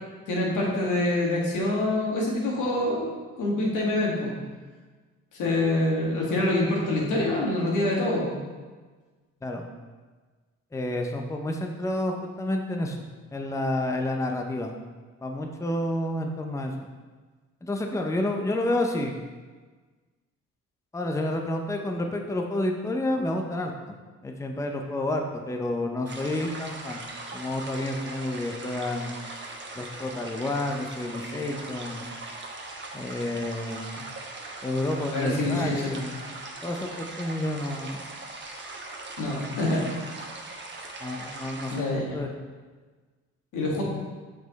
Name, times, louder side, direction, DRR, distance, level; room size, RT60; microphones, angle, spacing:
voice 1, 0.3-4.3 5.3-8.3 35.1-35.9 39.2-39.8 41.7-42.2 43.5-43.8, left 1 dB, 85° left, -3 dB, 1.8 m, -26 dB
voice 2, 10.7-14.7 15.2-16.7 17.6-19.2 20.9-24.0 24.2-27.0 27.3-29.2 29.8-32.1 32.9-34.0 34.6-36.2 36.6-38.0 41.0-42.3, left 1 dB, 10° left, 3 dB, 0.6 m, -30 dB
sound 1, 26.1-41.8, right 2 dB, 40° right, 1.1 m, -40 dB
6.1 x 5.1 x 4.0 m, 1.4 s
cardioid pair, 90°, 30 cm